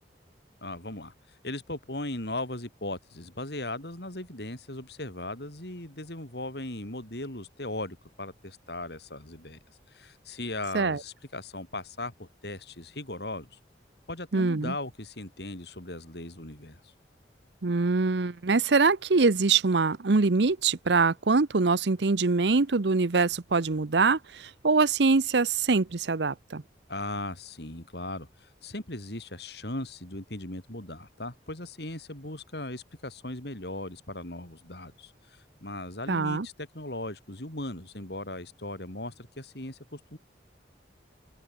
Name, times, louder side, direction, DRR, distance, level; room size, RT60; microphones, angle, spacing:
voice 1, 0.6-9.6 9.9-13.6 14.1-16.9 26.9-40.2, left 2 dB, 65° left, 5.3 m, -38 dB
voice 2, 14.3-14.7 17.6-26.6 36.1-36.5, right 4 dB, 75° right, 0.8 m, -24 dB
open air
head